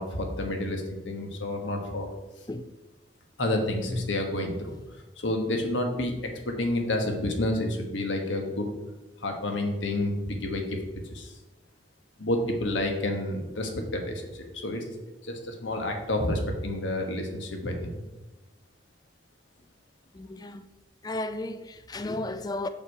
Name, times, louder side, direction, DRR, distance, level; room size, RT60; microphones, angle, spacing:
voice 1, 0.0-2.1 3.4-4.8 5.2-6.1 6.5-8.7 9.2-10.7 11.1-11.3 12.2-14.8 15.2-18.0, left 1 dB, 85° left, 1.4 m, -29 dB
voice 2, 20.1-20.7 21.0-22.7, left 2 dB, 20° left, 0.4 m, -34 dB
6.7 x 5.7 x 4.7 m
head